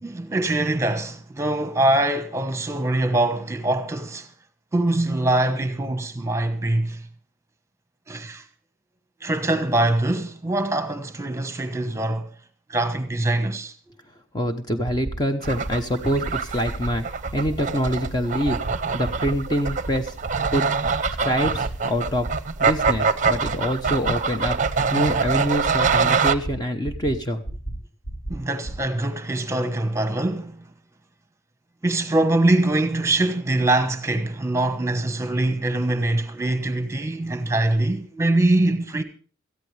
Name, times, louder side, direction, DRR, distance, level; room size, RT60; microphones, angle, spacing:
voice 1, 0.0-4.3 4.7-7.1 8.1-8.4 9.2-12.3 12.7-13.7 28.3-30.6 31.8-39.0, right 2 dB, 15° right, 1.2 m, -23 dB
voice 2, 14.3-17.0 17.3-18.6 18.9-20.7 21.2-22.3 22.6-24.6 24.9-27.4, equal, 20° left, 0.9 m, -25 dB
sound 1, 14.8-15.1 15.4-15.7 16.0-16.3 16.6-16.9 17.2-17.5 17.8-18.1 18.4-18.7 19.0-19.3 19.6-19.9 20.2-20.5 20.8-21.1 21.4-21.7 22.0-22.3 22.6-22.9 23.2-23.5 23.8-24.1 24.4-24.7 25.0-25.3 25.6-25.9 26.2-26.5 26.8-27.1 27.4-27.7 28.0-28.3 28.6-28.7, right 2 dB, 80° left, 5.0 m, -32 dB
sound 2, 15.4-26.3, right 5 dB, 40° right, 0.7 m, -24 dB
18.0 x 14.0 x 3.3 m
head